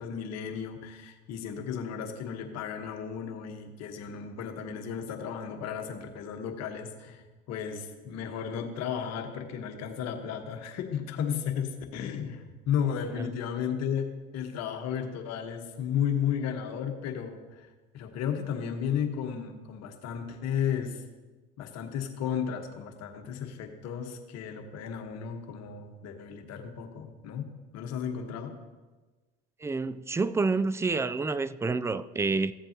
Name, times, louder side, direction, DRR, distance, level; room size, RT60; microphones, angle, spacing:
voice 1, 0.0-17.7 17.9-21.0 21.6-27.5 27.7-28.5, left 8 dB, 60° left, 1.4 m, -34 dB
voice 2, 29.6-32.5, right 3 dB, 10° right, 0.3 m, -28 dB
15.0 x 7.6 x 2.9 m
hypercardioid pair, 80°, 29 cm